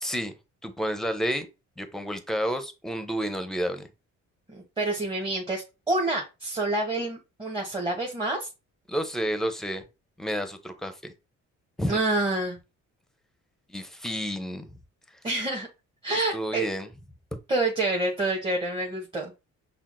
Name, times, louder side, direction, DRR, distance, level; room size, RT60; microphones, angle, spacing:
voice 1, 0.0-0.3 0.6-1.5 1.8-3.9 8.9-9.8 10.2-11.1 11.8-12.0 13.7-14.8 16.3-16.9, equal, ahead, 8 dB, 0.6 m, -30 dB
voice 2, 4.5-8.5 11.9-12.6 15.2-15.7 16.0-16.7 17.5-19.3, right 2 dB, 15° right, -1 dB, 0.9 m, -27 dB
5.7 x 2.1 x 2.5 m, 0.27 s
cardioid pair, 90°, 30 cm